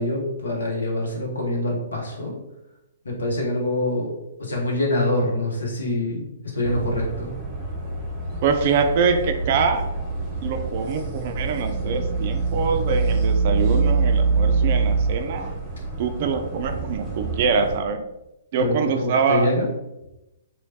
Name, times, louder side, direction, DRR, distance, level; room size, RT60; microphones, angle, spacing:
voice 1, 0.0-2.3 3.0-4.1 4.4-6.2 6.5-7.3 18.6-19.7, left 1 dB, 70° left, 0 dB, 1.0 m, -25 dB
sound 1, 6.6-17.8, right 4 dB, 15° right, 0.9 m, -25 dB
voice 2, 8.4-9.8 10.4-15.5 16.0-18.0 18.5-19.5, right 5 dB, 45° right, 6 dB, 0.4 m, -24 dB
3.0 x 3.0 x 2.8 m, 0.91 s
figure-of-eight pair, 120°, 0 cm